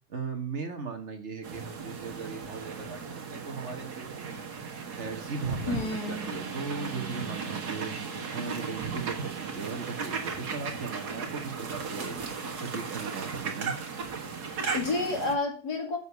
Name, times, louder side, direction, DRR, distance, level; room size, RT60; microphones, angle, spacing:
voice 1, 0.1-4.5 5.0-8.0 8.3-12.2 12.5-13.8, right 5 dB, 45° right, 4 dB, 1.6 m, -38 dB
sound 1, 1.4-15.3, right 5 dB, 80° right, 2.1 m, -36 dB
voice 2, 5.7-6.3 14.4-16.0, left 3 dB, 85° left, 1 dB, 3.3 m, -31 dB
7.0 x 6.5 x 6.7 m, 0.40 s
omnidirectional pair, 1.7 m